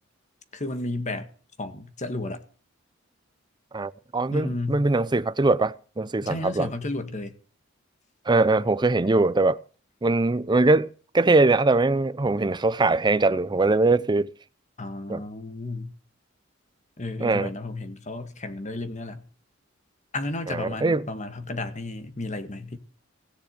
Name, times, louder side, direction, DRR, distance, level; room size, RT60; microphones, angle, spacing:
voice 1, 0.5-1.3 1.6-2.4 4.3-4.8 6.2-7.4 14.8-15.9 17.0-19.2 20.1-22.8, left 2 dB, 35° left, 1.7 m, -32 dB
voice 2, 3.7-6.7 8.3-9.6 10.0-14.3 15.1-15.2 17.2-17.5 20.5-21.1, right 3 dB, 20° right, 0.6 m, -22 dB
16.5 x 7.1 x 8.8 m
head